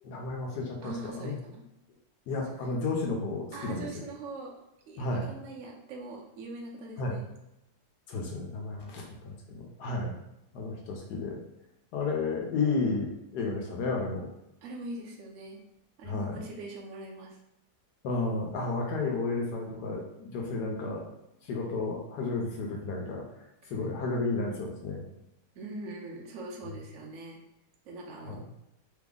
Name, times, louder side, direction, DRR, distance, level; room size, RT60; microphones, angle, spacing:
voice 1, 0.0-1.4 2.3-3.9 5.0-5.3 7.0-7.2 8.1-10.2 10.5-11.4 11.9-14.3 16.1-16.4 18.0-21.0 21.4-23.2 23.7-25.1 28.2-28.4, left 3 dB, 75° left, 0 dB, 1.2 m, -32 dB
voice 2, 0.8-1.6 2.5-2.8 3.5-4.5 4.9-7.3 14.6-15.6 16.0-17.4 23.6-24.0 25.5-27.4 27.8-28.4, right 2 dB, 60° right, -1 dB, 0.9 m, -42 dB
3.3 x 2.0 x 3.6 m, 0.86 s
omnidirectional pair, 1.9 m